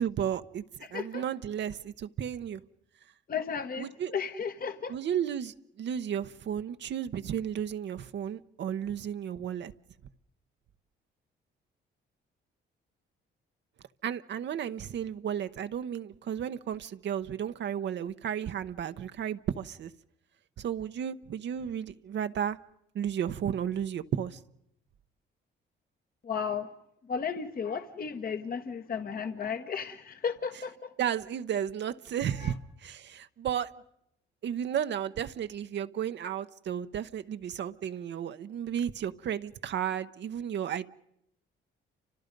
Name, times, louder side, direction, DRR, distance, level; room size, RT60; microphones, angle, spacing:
voice 1, 0.0-2.6 3.8-4.1 4.9-9.7 14.0-19.9 20.6-22.6 22.9-24.4 31.0-33.7 34.4-40.9, right 9 dB, 65° right, 0.9 m, -33 dB
voice 2, 0.8-1.2 3.3-5.0 26.2-26.7 27.1-30.9 32.4-32.5, left 6 dB, 50° left, 1.4 m, -34 dB
29.5 x 25.5 x 5.3 m
cardioid pair, 90°, 20 cm